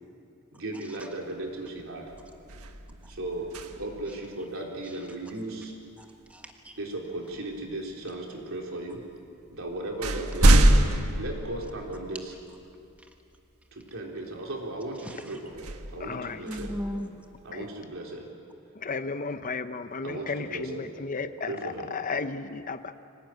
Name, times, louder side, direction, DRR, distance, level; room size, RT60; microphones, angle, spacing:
voice 1, 0.5-2.1 3.1-5.7 6.8-9.0 9.5-10.6 11.2-12.3 13.7-16.7 17.4-18.3 20.0-20.9 21.4-21.9, right 2 dB, 65° right, 0 dB, 3.8 m, -36 dB
sound 1, 1.4-1.7 2.1-4.1 6.3-6.5 7.3-8.0 8.9-9.0 9.4-12.3 12.8-12.9 15.5-17.7, right 1 dB, 85° right, 1.4 m, -25 dB
voice 2, 6.0-6.8 15.0-15.4 16.5-17.2, equal, 5° right, 2 dB, 1.6 m, -38 dB
voice 3, 16.1-16.4 18.8-22.8, left 4 dB, 40° left, 11 dB, 0.7 m, -33 dB
25.0 x 18.0 x 9.1 m, 2.5 s
head